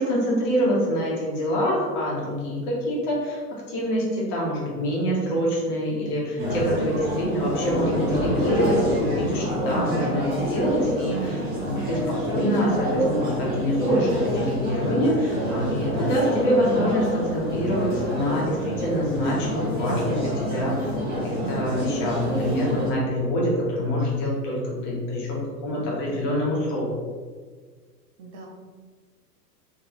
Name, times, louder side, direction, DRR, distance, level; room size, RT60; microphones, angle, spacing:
voice 1, 0.0-3.4 3.7-26.9, equal, 35° left, -4 dB, 1.5 m, -25 dB
sound 1, 6.4-22.9, equal, 20° right, 1.3 m, -27 dB
voice 2, 25.7-26.7 28.2-28.5, right 3 dB, 45° right, 0 dB, 1.0 m, -44 dB
3.6 x 3.2 x 3.0 m, 1.5 s
figure-of-eight pair, 95°, 49 cm